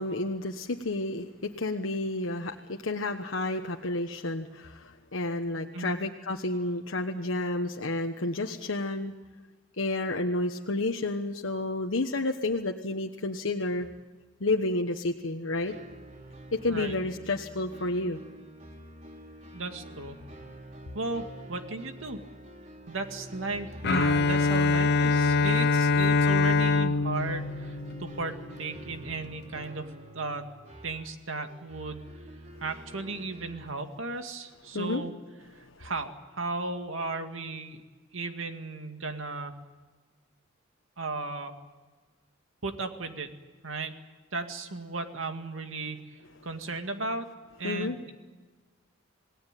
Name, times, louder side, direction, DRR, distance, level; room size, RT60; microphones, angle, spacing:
voice 1, 0.0-9.1 9.8-13.9 14.4-15.7 16.5-18.2 34.7-35.0 47.6-48.0, left 2 dB, 75° left, 2 dB, 1.2 m, -30 dB
sound 1, 15.5-33.7, right 1 dB, 35° right, 3.2 m, -46 dB
voice 2, 19.5-20.2 20.9-22.2 22.9-30.5 30.8-32.1 32.6-35.1 35.8-37.8 38.1-39.5 41.0-41.5 42.6-43.3 43.6-43.9 44.3-46.1 46.4-47.3 47.6-48.1, right 3 dB, 85° right, 6 dB, 2.2 m, -35 dB
Bowed string instrument, 23.8-28.7, left 4 dB, 55° left, 0.7 m, -24 dB
28.0 x 19.0 x 9.1 m, 1.3 s
head